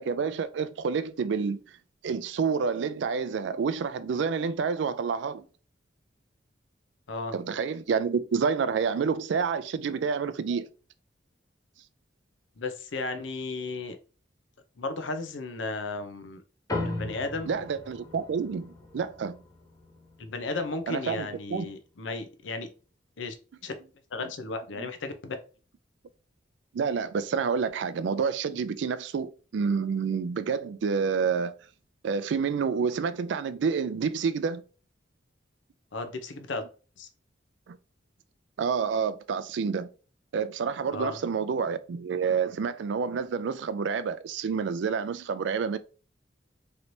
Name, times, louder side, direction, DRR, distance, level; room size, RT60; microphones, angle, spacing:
voice 1, 0.0-1.6 2.0-5.4 7.3-10.7 17.4-19.4 20.9-21.7 24.2-24.3 24.8-24.9 26.7-31.5 32.0-34.6 37.7-37.8 38.6-39.9 40.3-45.8, right 6 dB, 70° right, 0.3 m, -28 dB
voice 2, 12.6-14.0 14.8-16.4 16.8-17.5 20.2-22.7 23.2-23.3 23.6-23.7 24.1-25.4 35.9-36.6 37.0-37.1 40.9-41.2, left 3 dB, 90° left, 0.6 m, -34 dB
sound 1, 16.7-21.4, left 2 dB, 20° left, 0.7 m, -38 dB
3.2 x 2.9 x 2.6 m
head